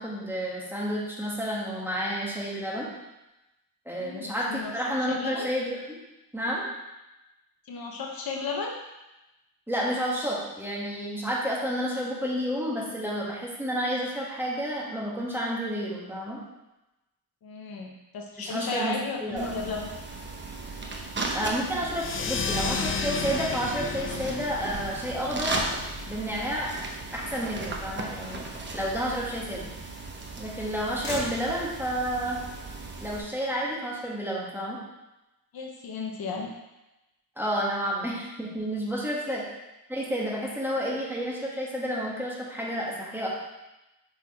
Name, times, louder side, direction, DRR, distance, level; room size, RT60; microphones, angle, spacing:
voice 1, 0.0-2.9 3.9-6.0 6.3-6.7 9.7-16.4 18.4-18.9 19.2-19.7 21.3-25.5 26.1-26.7 27.1-28.4 28.7-29.7 30.4-32.4 33.0-34.8 37.4-39.4 39.9-43.3, equal, 5° right, -6 dB, 1.7 m, -30 dB
voice 2, 4.0-4.7 5.2-5.5 7.7-8.7 17.4-19.9 35.5-36.5 38.9-39.0 39.3-39.4, left 4 dB, 65° left, 0 dB, 0.9 m, -34 dB
Motor vehicle (road), 18.2-34.1, left 2 dB, 85° left, 1.9 m, -48 dB
sound 1, 19.4-33.2, right 3 dB, 30° right, 0.8 m, -36 dB
sound 2, 21.9-27.0, left 5 dB, 35° left, 0.4 m, -33 dB
6.0 x 4.1 x 4.3 m, 0.99 s
cardioid pair, 115°, 39 cm